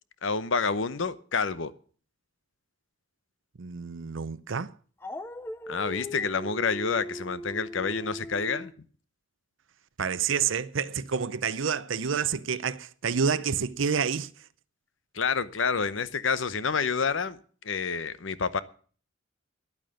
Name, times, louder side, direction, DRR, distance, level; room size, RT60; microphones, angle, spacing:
voice 1, 0.2-1.7 5.7-8.7 15.1-17.4 17.6-18.6, left 5 dB, 70° left, 0.8 m, -28 dB
voice 2, 3.6-4.7 10.0-14.3, right 6 dB, 70° right, 0.6 m, -28 dB
Dog, 5.0-8.7, equal, 10° left, 0.5 m, -39 dB
11.0 x 8.9 x 7.7 m
head